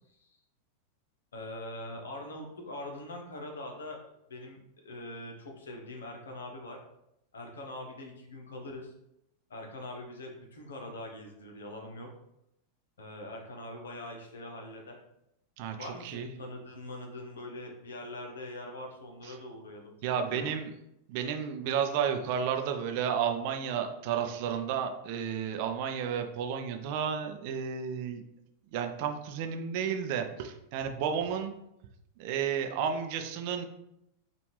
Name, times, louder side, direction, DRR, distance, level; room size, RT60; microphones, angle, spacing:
voice 1, 1.3-4.0 4.3-6.8 7.3-8.9 9.5-12.1 13.0-15.0 15.8-19.9 20.2-20.5, left 1 dB, 65° left, 1 dB, 0.9 m, -43 dB
voice 2, 15.6-16.3 19.2-19.4 20.0-20.7 21.1-28.2 28.7-31.5 32.2-33.6, right 7 dB, 45° right, 5 dB, 0.5 m, -32 dB
5.0 x 2.5 x 3.2 m, 0.81 s
figure-of-eight pair, 90°, 0 cm